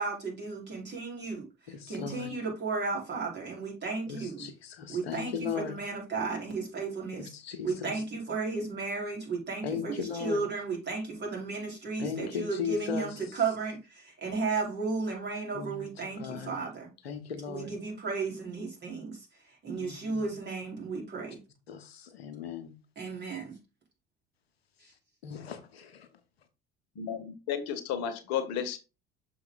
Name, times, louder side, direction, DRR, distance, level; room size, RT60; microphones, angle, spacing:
voice 1, 0.0-1.5 1.9-4.5 4.9-7.3 7.6-16.9 17.5-19.2 19.6-21.4 23.0-23.6, right 4 dB, 35° right, 4.4 m, -34 dB
voice 2, 1.7-2.3 4.1-5.8 7.2-8.0 9.6-10.4 12.0-13.4 15.5-16.5 17.0-17.7 19.7-20.4 21.7-22.7 25.2-26.1, left 7 dB, 85° left, 1.1 m, -38 dB
voice 3, 26.9-28.8, left 8 dB, 60° left, 1.3 m, -33 dB
6.8 x 4.8 x 4.0 m
hypercardioid pair, 65°, 30 cm